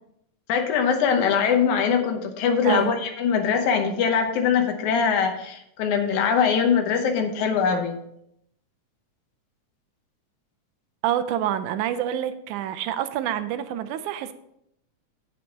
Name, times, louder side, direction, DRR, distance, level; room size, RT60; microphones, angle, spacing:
voice 1, 0.5-8.0, left 6 dB, 80° left, 5 dB, 2.4 m, -22 dB
voice 2, 11.0-14.3, right 11 dB, 90° right, 11 dB, 2.1 m, -27 dB
9.0 x 7.8 x 4.1 m, 0.77 s
omnidirectional pair, 3.4 m